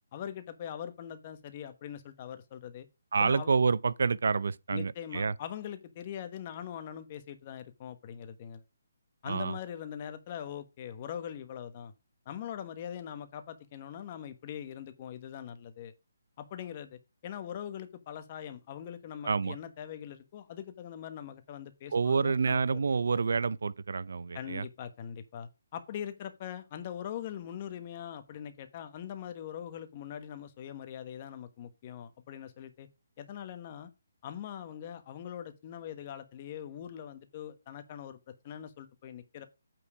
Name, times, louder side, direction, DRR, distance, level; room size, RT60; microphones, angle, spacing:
voice 1, 0.1-2.9 3.2-3.5 4.7-8.6 9.2-11.9 12.2-15.9 16.4-22.8 24.3-32.9 33.2-33.9 34.2-39.5, left 9 dB, 30° left, 1.3 m, -42 dB
voice 2, 3.1-5.3 9.2-9.6 19.2-19.6 21.9-24.6, right 5 dB, 70° right, 0.5 m, -28 dB
8.9 x 4.6 x 4.9 m
hypercardioid pair, 160°, 0 cm